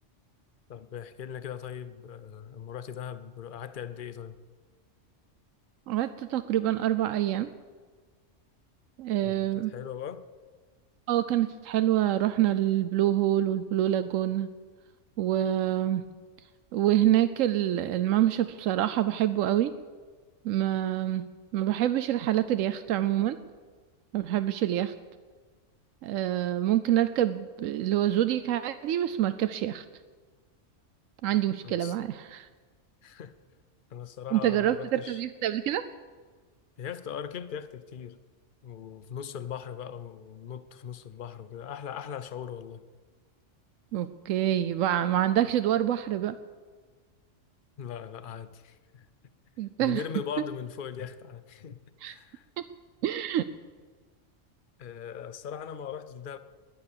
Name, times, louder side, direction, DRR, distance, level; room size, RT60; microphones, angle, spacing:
voice 1, 0.7-4.4 9.2-10.2 31.6-32.0 33.0-33.3 33.9-35.2 36.8-38.2 38.6-42.8 47.8-49.1 49.8-52.4 54.8-56.4, left 8 dB, 45° left, 0.9 m, -39 dB
voice 2, 5.9-7.5 9.0-9.7 11.1-14.5 15.2-16.1 16.7-19.7 20.4-21.3 21.5-23.4 24.1-24.9 26.0-29.8 31.2-32.5 34.3-35.8 43.9-46.4 49.6-50.0 52.0-52.2 53.0-53.4, right 12 dB, 90° right, 1.0 m, -26 dB
21.0 x 9.9 x 6.8 m
omnidirectional pair, 1.3 m